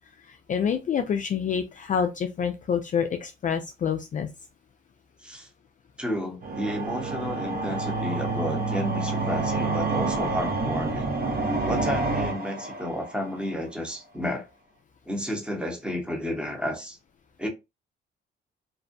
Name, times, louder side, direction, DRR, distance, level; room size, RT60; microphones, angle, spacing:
voice 1, 0.3-4.3, left 7 dB, 40° left, 0.4 m, -27 dB
voice 2, 6.0-11.2 11.7-14.5 15.1-17.0 17.4-17.5, left 1 dB, 5° right, 0.9 m, -31 dB
sound 1, 6.4-13.4, right 3 dB, 50° right, 0.8 m, -28 dB
2.5 x 2.1 x 2.5 m
cardioid pair, 90°, 20 cm